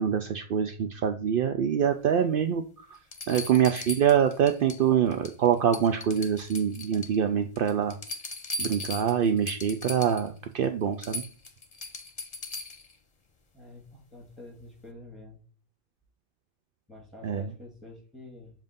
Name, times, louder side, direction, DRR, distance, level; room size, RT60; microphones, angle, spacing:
voice 1, 0.0-2.6 3.3-7.9 8.6-11.2 17.2-17.5, right 8 dB, 65° right, 7 dB, 0.7 m, -25 dB
sound 1, 2.4-2.5 3.1-4.8 5.1-5.5 5.7-7.2 7.6-10.3 10.6-10.7 11.0-12.9 14.6-14.7, left 2 dB, 40° left, 0.9 m, -38 dB
voice 2, 13.5-15.4 16.9-18.5, left 2 dB, ahead, -1 dB, 2.3 m, -48 dB
7.5 x 2.6 x 5.1 m, 0.42 s
omnidirectional pair, 1.0 m